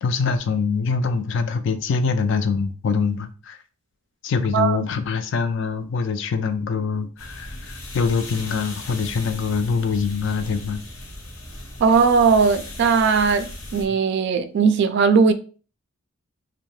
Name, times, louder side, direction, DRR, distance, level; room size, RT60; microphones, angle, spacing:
voice 1, 0.0-3.6 4.2-10.8, left 5 dB, 60° left, 0.3 m, -24 dB
sound 1, 7.2-13.9, left 1 dB, 80° left, 0.8 m, -37 dB
voice 2, 11.8-15.3, right 5 dB, 55° right, 0.3 m, -18 dB
2.7 x 2.1 x 3.0 m
head